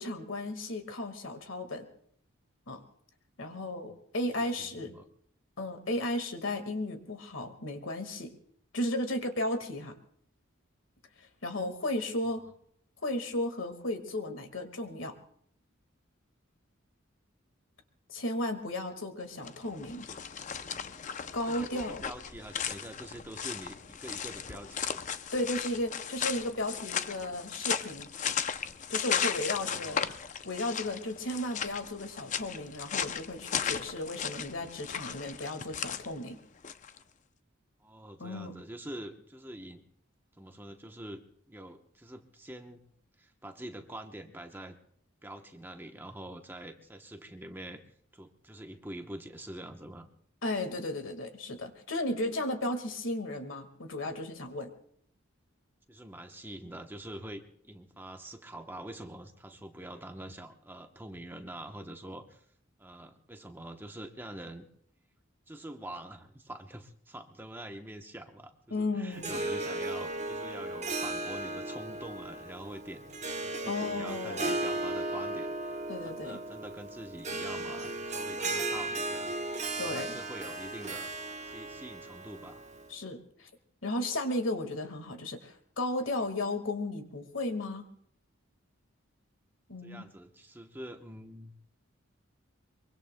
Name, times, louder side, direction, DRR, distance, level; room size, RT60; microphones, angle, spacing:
voice 1, 0.0-1.9 2.7-2.8 3.4-5.0 5.6-8.3 8.7-10.0 11.2-12.4 13.0-15.2 18.1-20.1 21.3-22.0 25.3-28.1 28.9-30.1 30.5-36.4 38.2-38.5 50.4-54.7 68.7-69.4 73.7-74.5 75.9-76.4 79.8-80.2 82.9-83.5 83.8-87.9 89.7-90.1, left 1 dB, 70° left, 7 dB, 1.8 m, -34 dB
voice 2, 4.6-5.0 11.6-11.7 21.5-25.1 29.6-30.1 37.8-39.8 40.4-41.2 41.5-42.8 43.2-44.8 45.2-47.8 48.1-50.1 55.9-62.4 62.8-64.7 65.5-73.0 73.4-75.8 76.0-79.4 79.7-81.1 81.4-82.6 89.8-91.6, right 1 dB, 10° right, 5 dB, 0.9 m, -45 dB
sound 1, 19.3-37.0, left 7 dB, 40° left, 0.5 m, -36 dB
Harp, 69.1-82.9, right 2 dB, 35° right, 1.1 m, -36 dB
24.0 x 23.5 x 2.2 m, 0.65 s
head